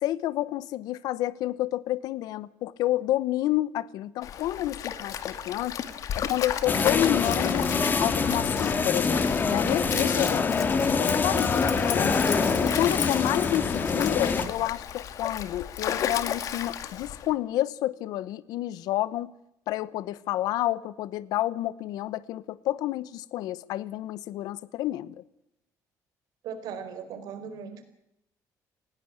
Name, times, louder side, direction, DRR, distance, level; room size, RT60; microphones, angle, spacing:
voice 1, 0.0-5.8 6.1-7.7 8.0-12.2 12.6-19.3 19.7-25.2, left 14 dB, 85° left, 1.0 m, -29 dB
Stream, 4.2-17.3, left 9 dB, 60° left, 2.3 m, -34 dB
sound 1, 6.6-14.4, left 4 dB, 30° left, 2.2 m, -25 dB
voice 2, 26.4-27.9, right 7 dB, 75° right, 4.5 m, -38 dB
20.0 x 17.0 x 9.4 m
cardioid pair, 140°, 7 cm